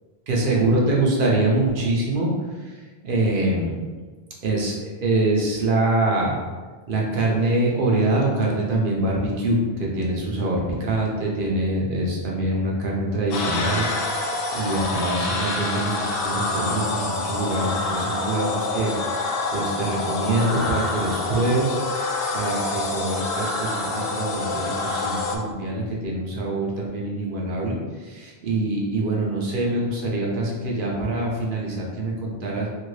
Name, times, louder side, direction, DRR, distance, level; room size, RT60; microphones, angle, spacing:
voice 1, 0.3-2.3 2.6-2.7 3.0-3.7 4.4-6.4 6.9-14.2 14.5-18.9 19.5-21.8 22.3-32.7, right 2 dB, 60° right, -2 dB, 0.8 m, -24 dB
sound 1, 13.3-25.4, left 2 dB, 70° left, 0.8 m, -27 dB
2.9 x 2.8 x 3.1 m, 1.4 s
omnidirectional pair, 1.1 m